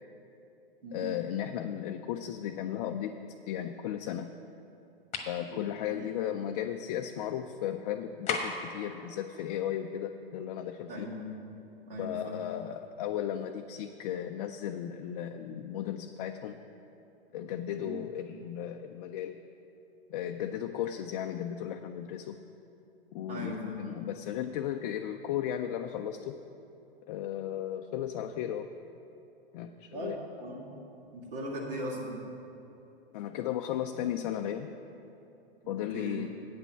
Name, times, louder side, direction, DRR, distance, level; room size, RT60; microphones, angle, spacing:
voice 1, 0.9-3.2 3.5-4.3 5.3-11.1 12.0-16.6 17.3-19.4 20.1-22.4 23.1-26.4 27.1-28.7 29.5-30.2 33.1-34.7 35.7-36.3, left 10 dB, 45° left, 5 dB, 0.4 m, -35 dB
sound 1, 5.1-5.4 8.3-8.7, left 4 dB, 25° left, 1.2 m, -33 dB
voice 2, 5.5-6.1 10.9-11.5 11.9-12.4 17.7-17.9 23.3-23.9 29.9-30.1 30.4-30.7 31.1-32.2 35.6-36.2, equal, 70° right, -3 dB, 2.5 m, -39 dB
8.7 x 5.9 x 8.1 m, 2.9 s
hypercardioid pair, 110°, 29 cm